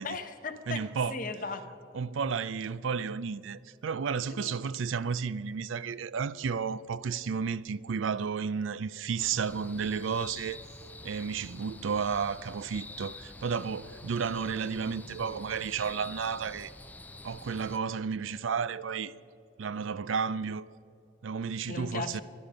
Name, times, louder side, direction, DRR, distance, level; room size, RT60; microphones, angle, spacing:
voice 1, 0.0-0.8 1.1-1.6 4.3-4.6 21.7-22.2, left 4 dB, 45° left, 1.0 m, -37 dB
voice 2, 0.7-1.2 1.9-10.6 11.0-16.7 17.2-19.1 19.6-20.7 21.2-22.2, right 6 dB, 75° right, 0.4 m, -32 dB
sound 1, 9.2-17.8, left 2 dB, 10° left, 0.4 m, -47 dB
25.0 x 10.0 x 5.1 m
head